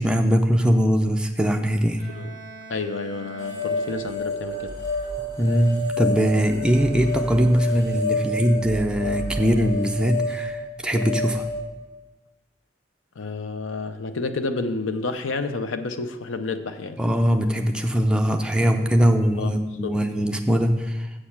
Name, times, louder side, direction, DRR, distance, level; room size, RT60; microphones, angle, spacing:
voice 1, 0.0-2.0 5.4-11.4 17.0-21.1, equal, 5° right, 4 dB, 0.4 m, -21 dB
Bowed string instrument, 2.0-4.7, right 2 dB, 30° left, 1.8 m, -44 dB
voice 2, 2.7-4.8 13.2-17.0 19.4-19.5 19.8-20.0, left 3 dB, 85° left, 9 dB, 0.6 m, -30 dB
sound 1, 3.4-11.6, left 2 dB, 65° left, 3.1 m, -29 dB
7.6 x 6.5 x 5.7 m, 1.1 s
head